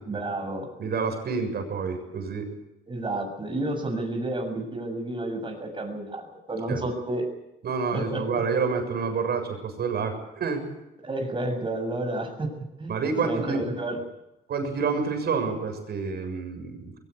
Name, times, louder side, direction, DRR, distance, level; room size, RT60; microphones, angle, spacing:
voice 1, 0.1-0.7 2.9-7.3 7.9-8.4 11.0-12.5 12.8-12.9 13.2-14.0, right 2 dB, 25° right, 3 dB, 6.9 m, -30 dB
voice 2, 0.8-2.5 6.7-6.9 7.6-10.6 12.9-13.6 14.5-17.0, right 5 dB, 55° right, 6 dB, 7.1 m, -28 dB
21.5 x 19.5 x 8.4 m, 0.90 s
cardioid pair, 90°, 20 cm